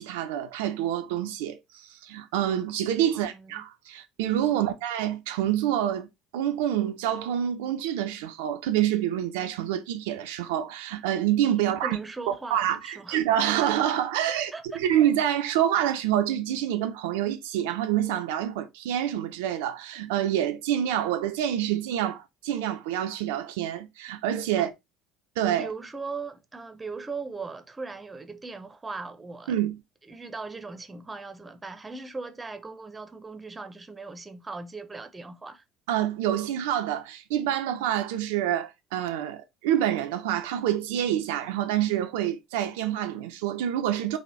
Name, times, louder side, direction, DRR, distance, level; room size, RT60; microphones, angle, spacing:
voice 1, 0.0-6.1 6.3-12.0 12.3-24.7 25.4-25.7 29.5-29.8 35.9-44.2, right 11 dB, 65° right, 0.6 m, -27 dB
voice 2, 3.1-3.6 4.5-4.7 11.8-13.2 14.3-14.8 24.5-24.7 25.6-29.5 30.1-35.6, right 4 dB, 20° right, 0.8 m, -39 dB
4.2 x 3.0 x 4.3 m
figure-of-eight pair, 60°, 0 cm